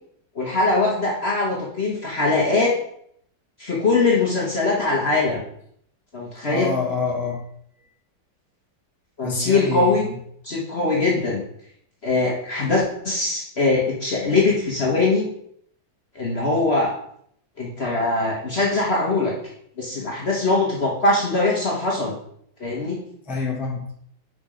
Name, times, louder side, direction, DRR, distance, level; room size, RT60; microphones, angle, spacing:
voice 1, 0.3-2.7 3.6-5.4 6.1-6.7 9.2-10.1 10.4-11.4 12.0-15.2 16.1-16.9 17.6-19.3 19.8-22.1 22.6-23.0, left 3 dB, 40° left, -3 dB, 1.2 m, -21 dB
voice 2, 6.5-7.4 9.2-10.0 23.3-23.9, left 4 dB, ahead, -3 dB, 1.0 m, -27 dB
5.1 x 4.4 x 5.0 m, 0.67 s
omnidirectional pair, 2.1 m